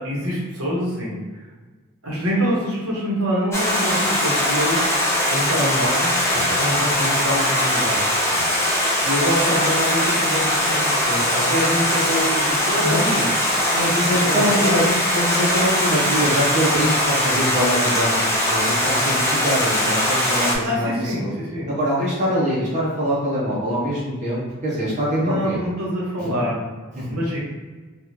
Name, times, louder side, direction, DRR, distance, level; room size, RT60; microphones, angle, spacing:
voice 1, 0.0-1.4 2.0-4.8 5.3-8.0 9.0-13.3 14.2-14.9 20.5-21.7 25.2-26.7 27.1-27.4, equal, 90° right, -5 dB, 1.1 m, -25 dB
Stream, 3.5-20.6, left 1 dB, 10° left, 0.4 m, -21 dB
voice 2, 13.7-14.8 15.1-21.3 21.7-25.6 26.2-26.4 27.0-27.2, equal, 35° right, -6 dB, 0.7 m, -23 dB
3.5 x 2.4 x 2.9 m, 1.3 s
head